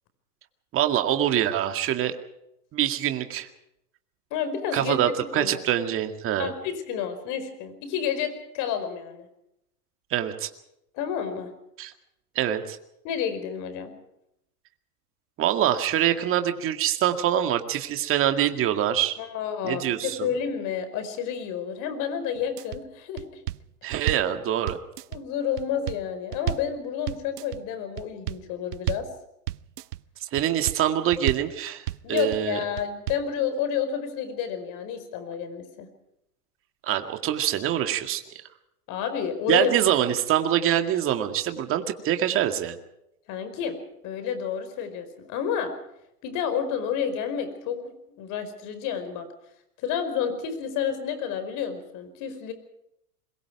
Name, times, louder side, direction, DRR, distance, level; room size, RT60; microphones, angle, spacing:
voice 1, 0.7-2.2 2.7-3.5 4.7-6.5 10.1-10.5 11.8-11.9 12.4-12.8 15.4-19.2 19.6-20.3 23.8-24.8 30.2-32.6 36.8-38.4 39.5-42.8, right 11 dB, 25° right, 6 dB, 2.1 m, -25 dB
voice 2, 4.3-5.0 5.3-5.6 6.4-9.3 10.9-11.5 13.0-13.9 19.2-23.4 25.1-29.1 32.0-35.9 38.9-39.7 43.3-43.8 44.0-45.7 46.2-47.8 48.2-49.3 49.8-52.5, left 8 dB, 40° left, 10 dB, 5.0 m, -30 dB
sound 1, 22.4-22.8 23.2-24.3 24.7-25.2 25.6-26.7 27.1-27.6 28.0-28.4 28.7-29.1 29.5-30.0 30.4-30.8 31.1-31.5 31.9-32.4 32.8-33.3, right 14 dB, 80° right, 0.8 m, -31 dB
26.0 x 22.5 x 4.8 m, 0.81 s
hypercardioid pair, 130°, 46 cm